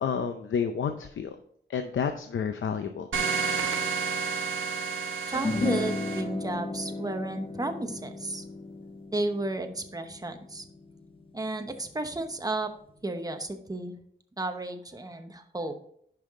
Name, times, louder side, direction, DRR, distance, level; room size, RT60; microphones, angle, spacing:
voice 1, 0.0-1.3 1.7-3.1, left 6 dB, 80° left, 7 dB, 0.6 m, -30 dB
sound 1, 3.1-6.2, right 5 dB, 85° right, 1.0 m, -30 dB
sound 2, 5.3-11.9, left 3 dB, 30° left, 0.5 m, -34 dB
voice 2, 5.3-8.4 9.1-10.6 11.3-12.7 13.0-13.9 14.4-15.7, right 2 dB, 20° right, 6 dB, 0.9 m, -33 dB
10.0 x 5.6 x 3.7 m, 0.66 s
wide cardioid pair, 135°, 20 cm